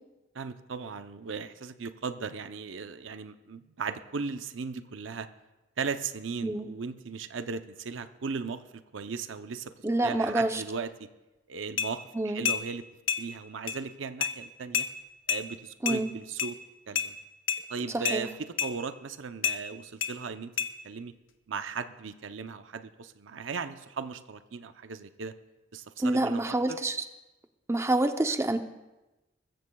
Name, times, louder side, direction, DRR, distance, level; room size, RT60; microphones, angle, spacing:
voice 1, 0.3-5.3 5.8-9.7 10.0-11.1 11.5-12.8 13.2-14.9 15.3-16.6 16.9-17.1 17.7-20.5 20.8-21.1 21.5-25.3 25.7-26.8, right 5 dB, 75° right, 10 dB, 0.6 m, -37 dB
voice 2, 9.8-10.6 12.1-12.4 15.8-16.1 18.1-18.3 26.0-27.0 27.7-28.6, right 2 dB, 15° right, 7 dB, 0.6 m, -27 dB
sound 1, 11.8-11.9 12.5-12.6 13.1-13.2 13.7-13.8 14.2-14.3 14.7-14.9 15.3-15.4 15.9-16.0 16.4-16.5 17.0-17.1 17.5-17.6 18.1-18.2 18.6-18.7 19.4-19.6 20.0-20.1 20.6-20.7, left 8 dB, 80° left, 0.9 m, -28 dB
22.0 x 14.5 x 2.3 m, 1.0 s
head